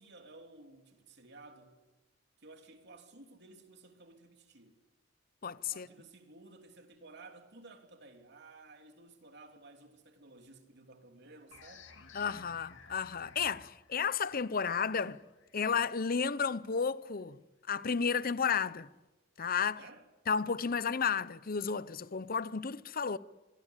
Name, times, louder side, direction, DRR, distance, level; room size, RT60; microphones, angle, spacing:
voice 1, 0.0-1.8 2.4-4.8 5.7-11.9 19.8-20.0, right 2 dB, 60° right, 3.2 m, -55 dB
voice 2, 5.4-5.9 12.1-15.2 15.5-17.4 17.7-18.9 19.4-19.8 20.3-23.2, left 6 dB, 45° left, 0.8 m, -32 dB
sound 1, 11.5-16.8, left 4 dB, 65° left, 2.5 m, -57 dB
24.5 x 23.5 x 8.3 m
head